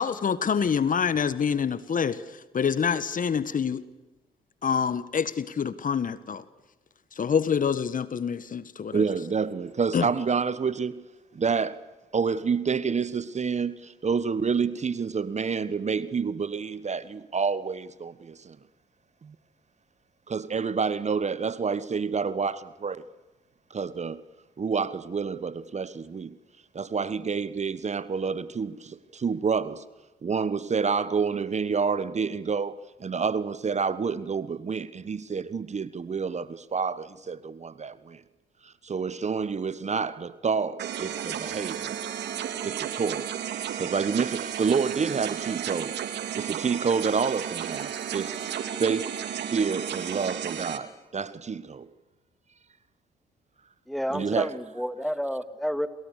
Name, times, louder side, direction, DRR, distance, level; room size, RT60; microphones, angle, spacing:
voice 1, 0.0-2.2 2.5-3.8 4.6-6.4 7.2-9.0 9.9-10.1, left 7 dB, 45° left, 1.6 m, -26 dB
voice 2, 8.9-11.1 11.3-11.8 12.1-18.6 19.2-19.3 20.3-23.0 23.7-24.2 24.6-26.4 26.7-29.8 30.2-38.2 38.6-41.9 42.6-46.0 46.3-49.2 49.5-51.9 54.1-54.5, right 5 dB, 40° right, 1.3 m, -28 dB
sound 1, 40.8-50.8, right 9 dB, 70° right, 2.7 m, -33 dB
voice 3, 53.9-55.9, equal, ahead, 2.5 m, -30 dB
28.5 x 28.0 x 6.7 m
hypercardioid pair, 55°, 18 cm